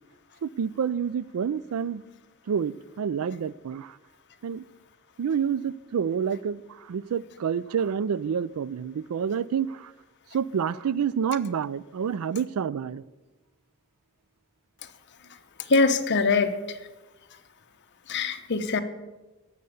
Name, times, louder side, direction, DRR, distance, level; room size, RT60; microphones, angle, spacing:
voice 1, 0.4-2.0 2.5-4.0 4.4-4.6 5.2-9.9 10.3-13.0, right 7 dB, 85° right, 21 dB, 0.4 m, -28 dB
voice 2, 15.7-16.8 18.1-18.8, left 4 dB, 55° left, 8 dB, 0.9 m, -23 dB
16.5 x 6.8 x 6.9 m, 1.2 s
head